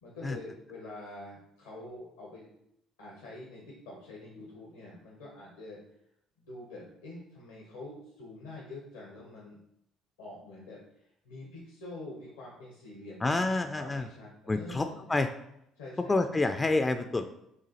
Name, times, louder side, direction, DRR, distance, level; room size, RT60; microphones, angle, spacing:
voice 1, 0.0-2.5 3.0-5.8 6.4-9.6 10.2-13.5 13.8-15.1 15.8-16.3, left 2 dB, 85° left, -4 dB, 0.9 m, -46 dB
voice 2, 13.2-14.1 14.5-15.3 16.1-17.3, left 2 dB, 25° left, 8 dB, 0.3 m, -28 dB
6.6 x 2.4 x 2.9 m, 0.79 s
hypercardioid pair, 55°, 0 cm